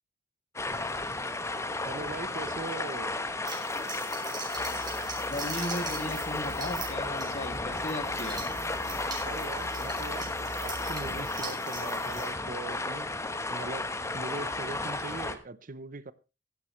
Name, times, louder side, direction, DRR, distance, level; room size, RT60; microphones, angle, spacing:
sound 1, 0.6-15.4, left 2 dB, 15° left, 1.2 m, -33 dB
voice 1, 1.9-3.2 9.2-10.3 10.6-13.1 13.5-16.1, right 3 dB, 45° right, 0.8 m, -40 dB
sound 2, 3.4-12.3, right 4 dB, 25° right, 5.8 m, -42 dB
sound 3, 4.5-11.2, right 1 dB, 80° right, 1.5 m, -46 dB
voice 2, 5.3-8.4, left 1 dB, 40° left, 2.4 m, -36 dB
16.0 x 12.0 x 3.2 m
head